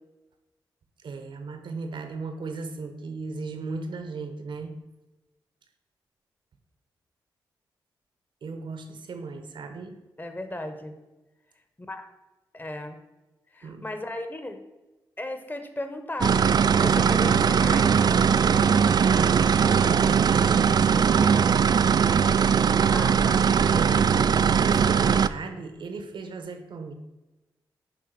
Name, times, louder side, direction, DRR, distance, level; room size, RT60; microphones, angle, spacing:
voice 1, 1.0-4.7 8.4-10.0 13.6-13.9 19.0-21.7 23.1-23.2 23.7-26.9, right 4 dB, 70° right, 7 dB, 1.1 m, -36 dB
voice 2, 10.2-10.9 11.9-12.1 12.5-13.0 13.5-14.6 15.2-16.3 16.8-18.1 22.9-23.4, left 1 dB, 20° left, 7 dB, 1.3 m, -35 dB
sound 1, 16.2-25.3, right 7 dB, 55° right, 0.4 m, -20 dB
10.5 x 3.6 x 6.1 m, 1.1 s
supercardioid pair, 45°, 9 cm